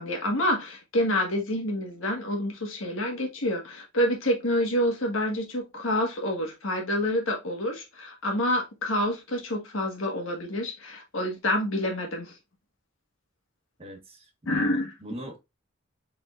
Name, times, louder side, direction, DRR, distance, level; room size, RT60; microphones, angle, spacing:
voice 1, 0.0-12.3 14.4-14.9, left 1 dB, 75° left, 1.5 m, -28 dB
voice 2, 13.8-15.4, right 1 dB, 30° right, 1.1 m, -42 dB
4.8 x 3.6 x 2.4 m
head